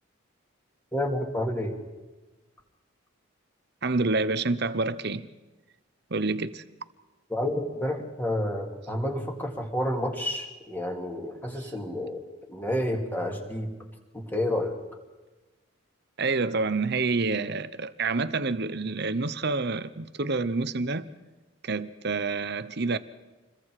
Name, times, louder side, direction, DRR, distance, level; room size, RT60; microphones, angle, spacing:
voice 1, 0.9-1.8 7.3-12.2 12.5-13.7 14.1-14.7, left 1 dB, 10° left, 2.8 m, -30 dB
voice 2, 3.8-5.3 6.1-6.6 11.6-11.7 16.2-21.1 21.6-23.0, right 3 dB, 50° right, 0.9 m, -28 dB
28.0 x 22.0 x 4.9 m
head